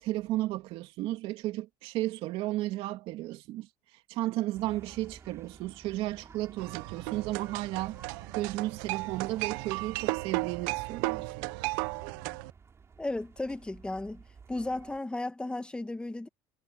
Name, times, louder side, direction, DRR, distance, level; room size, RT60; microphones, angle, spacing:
voice 1, 0.0-3.7 4.1-8.0 8.3-11.5, right 16 dB, 70° right, 2.8 m, -34 dB
sound 1, 4.5-15.0, right 5 dB, 25° right, 4.5 m, -53 dB
sound 2, 6.6-12.5, right 23 dB, 90° right, 0.6 m, -35 dB
voice 2, 13.0-14.2 14.5-16.3, left 2 dB, 10° left, 1.6 m, -34 dB
cardioid pair, 115°, 10 cm